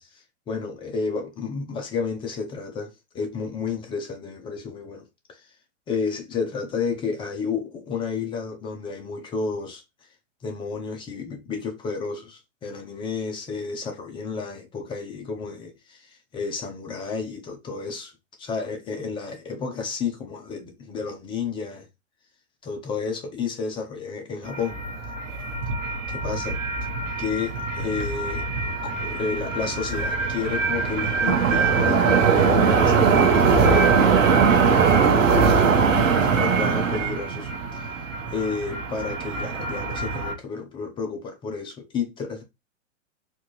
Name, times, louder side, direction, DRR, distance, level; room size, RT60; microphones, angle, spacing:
voice 1, 0.5-5.5 5.9-9.8 10.4-18.1 18.4-21.9 22.6-24.8 26.1-26.6 27.2-28.5 28.8-38.0 38.3-42.4, left 5 dB, 15° left, 0.5 m, -31 dB
sound 1, 24.5-40.3, right 5 dB, 85° right, 1.3 m, -22 dB
4.3 x 2.5 x 3.1 m
hypercardioid pair, 130°, 38 cm